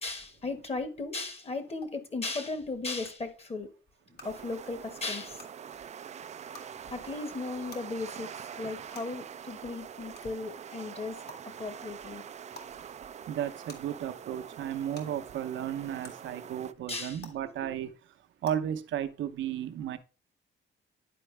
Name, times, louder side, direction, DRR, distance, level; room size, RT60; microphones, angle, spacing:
voice 1, 0.0-3.7 4.1-5.5 6.9-11.2 11.6-12.2 16.9-17.7, left 3 dB, 30° left, 1.3 m, -36 dB
sound 1, 1.8-1.9 3.0-3.1 4.1-4.2 5.3-5.5 6.5-6.6 7.7-7.8 8.9-9.0 10.1-10.3 11.3-11.4 12.5-12.7 13.7-13.8 14.9-15.0 16.0-16.1 17.2-17.3 18.4-18.5, left 3 dB, 55° left, 1.9 m, -46 dB
sound 2, 4.2-16.7, right 8 dB, 35° right, 0.4 m, -44 dB
voice 2, 13.3-17.9 18.4-20.0, right 10 dB, 75° right, 0.7 m, -34 dB
10.0 x 4.5 x 3.3 m
cardioid pair, 90°, 20 cm